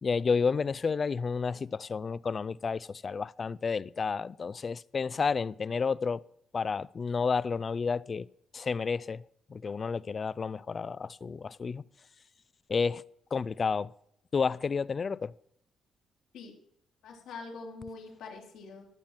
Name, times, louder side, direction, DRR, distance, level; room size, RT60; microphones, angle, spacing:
voice 1, 0.0-6.2 6.5-8.3 8.5-9.2 9.5-11.8 12.7-13.0 13.3-13.9 14.3-15.3, left 5 dB, 40° left, 0.4 m, -31 dB
voice 2, 17.0-18.9, left 4 dB, 80° left, 2.9 m, -44 dB
13.0 x 6.0 x 7.2 m
cardioid pair, 90°, 0 cm